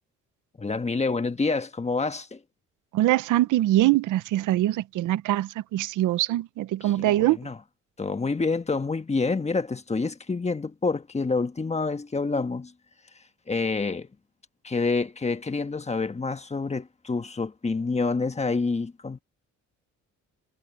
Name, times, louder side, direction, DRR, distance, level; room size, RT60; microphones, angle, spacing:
voice 1, 0.6-2.4 6.8-7.5 8.0-12.7 13.5-14.1 14.6-19.2, left 4 dB, 20° left, 1.4 m, -27 dB
voice 2, 2.9-7.4, right 15 dB, 85° right, 0.9 m, -23 dB
cardioid pair, 90°, 30 cm